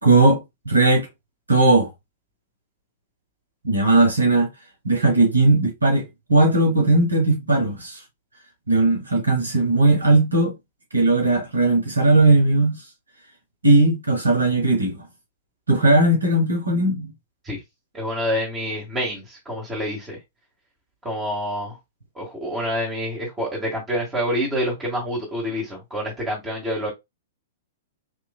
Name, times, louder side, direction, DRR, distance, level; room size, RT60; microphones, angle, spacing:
voice 1, 0.0-1.1 1.5-1.9 3.6-4.5 4.8-8.0 8.7-10.5 10.9-12.7 13.6-14.9 15.7-17.1, right 2 dB, 85° right, 1.2 m, -18 dB
voice 2, 17.9-20.2 21.0-21.7 22.1-26.9, equal, 20° right, 1.6 m, -27 dB
4.3 x 2.9 x 2.2 m
figure-of-eight pair, 105°, 0 cm